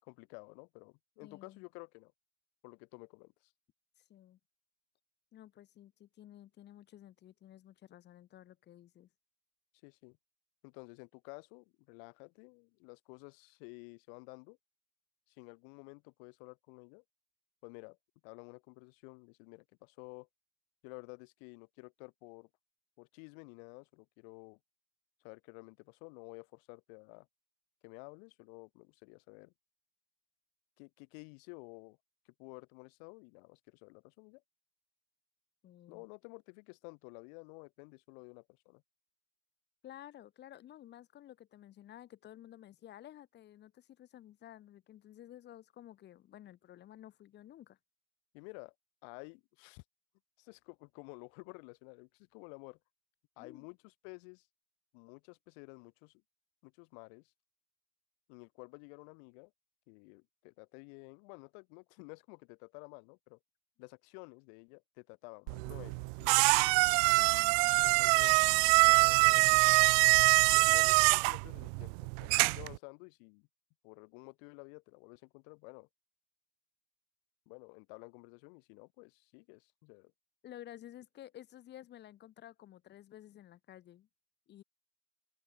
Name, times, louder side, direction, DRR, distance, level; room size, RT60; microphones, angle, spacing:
voice 1, 0.0-2.1 2.6-3.5 9.8-10.2 10.6-14.6 15.3-17.0 17.6-18.0 18.2-20.3 20.8-22.5 23.0-24.6 25.2-27.3 27.8-29.5 30.8-32.0 32.4-34.4 35.9-38.8 48.3-48.7 49.0-49.8 50.4-52.8 53.4-54.5 54.9-56.2 56.6-57.3 58.3-59.5 59.9-63.4 63.8-66.9 67.8-68.5 68.8-69.5 70.5-73.5 73.8-75.9 77.5-80.1, left 40 dB or more, 55° left, 4.9 m, -52 dB
voice 2, 1.2-1.6 4.0-4.4 5.3-9.1 35.6-36.0 39.8-47.8 53.4-53.7 67.2-67.5 80.4-84.1 84.5-84.6, left 12 dB, 30° left, 5.0 m, -53 dB
sound 1, 65.5-72.8, right 40 dB or more, 50° right, 0.5 m, -25 dB
cardioid pair, 175°, 36 cm